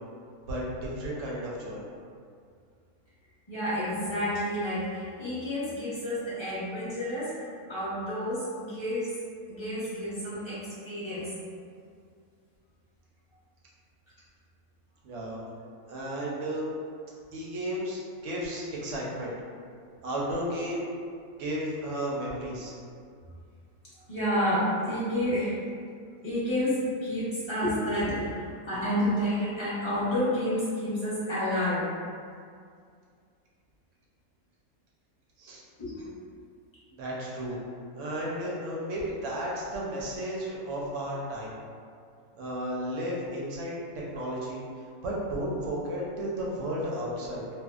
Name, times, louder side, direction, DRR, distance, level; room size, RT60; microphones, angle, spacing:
voice 1, 0.5-1.8 15.0-15.4 15.9-16.7 17.3-19.3 20.0-20.9 21.4-22.7 35.4-35.6 36.9-37.6 37.9-41.6 42.3-43.8 44.1-47.4, right 1 dB, 70° right, -4 dB, 0.8 m, -33 dB
voice 2, 3.5-7.3 7.7-9.1 9.5-11.3 24.1-25.5 26.2-31.8 35.8-36.0, equal, 25° left, -12 dB, 0.7 m, -30 dB
2.6 x 2.1 x 2.3 m, 2.3 s
omnidirectional pair, 1.5 m